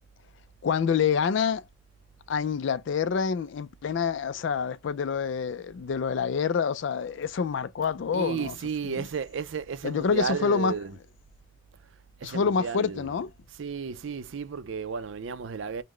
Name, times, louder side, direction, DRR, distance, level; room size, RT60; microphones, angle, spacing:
voice 1, 0.6-1.6 2.3-8.5 8.8-9.1 9.8-10.7 12.2-13.3, left 6 dB, 65° left, 0.3 m, -27 dB
voice 2, 8.1-10.9 12.2-13.1 13.6-15.8, right 6 dB, 70° right, 0.4 m, -33 dB
3.8 x 2.1 x 3.0 m
head